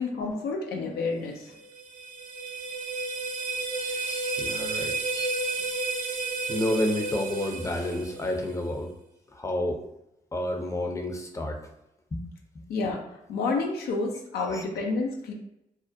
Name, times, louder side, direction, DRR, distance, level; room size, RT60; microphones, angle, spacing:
voice 1, 0.0-1.5 12.7-15.3, left 3 dB, 80° left, 1 dB, 0.4 m, -30 dB
sound 1, 1.5-8.6, right 3 dB, 60° right, 0.4 m, -32 dB
voice 2, 3.8-5.5 6.5-8.9 9.3-9.8 10.3-11.6 12.1-12.2 12.5-12.6 14.5-14.6, left 1 dB, 20° left, 3 dB, 0.5 m, -30 dB
2.4 x 2.0 x 2.6 m, 0.84 s
supercardioid pair, 45°, 16 cm